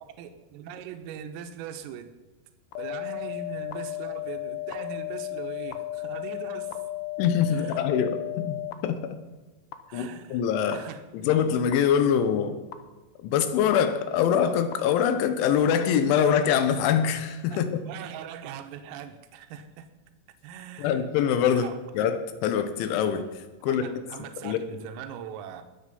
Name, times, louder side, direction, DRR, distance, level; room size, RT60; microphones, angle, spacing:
voice 1, 0.2-2.1 2.8-6.8 7.5-7.8 9.9-10.4 10.7-11.0 17.5-19.9 20.4-21.1 21.5-21.8 23.7-25.6, right 8 dB, 80° right, 7 dB, 3.7 m, -40 dB
sound 1, 2.7-8.7 9.7-9.8 10.7-10.8 11.7-11.8 12.7-12.8 13.7-13.8 14.7-14.8 15.7-15.8, left 18 dB, 90° left, 2.3 m, -34 dB
voice 2, 7.2-9.2 9.9-10.8 11.1-12.6 13.2-17.8 20.8-21.7 21.9-23.2 23.6-24.0 24.4-24.6, left 8 dB, 75° left, 9 dB, 3.3 m, -24 dB
21.5 x 8.0 x 5.4 m, 1.2 s
omnidirectional pair, 6.0 m